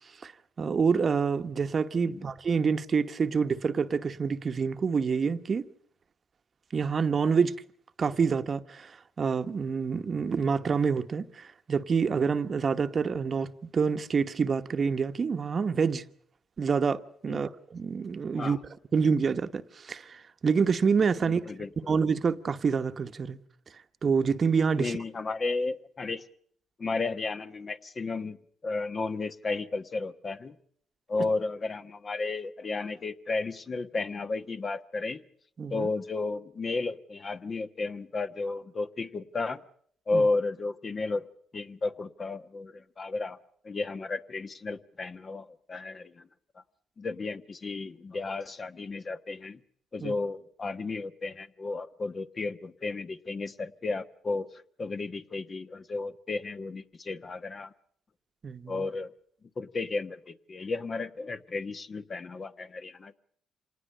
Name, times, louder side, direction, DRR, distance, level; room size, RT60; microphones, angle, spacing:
voice 1, 0.6-5.6 6.7-7.5 8.0-16.0 16.6-18.6 18.9-21.4 21.9-23.4 24.0-25.0 35.6-35.9 40.1-40.2 50.0-50.1 58.4-58.8, right 5 dB, 40° right, 1.1 m, -27 dB
voice 2, 21.2-21.7 24.8-26.2 26.8-28.4 28.6-30.6 31.1-35.2 35.7-39.6 40.1-41.3 41.5-43.4 43.6-46.3 47.0-49.6 49.9-54.5 54.8-57.7 58.7-59.1 59.6-63.1, left 3 dB, 40° left, 1.2 m, -33 dB
26.5 x 19.0 x 6.6 m
cardioid pair, 90°, 0 cm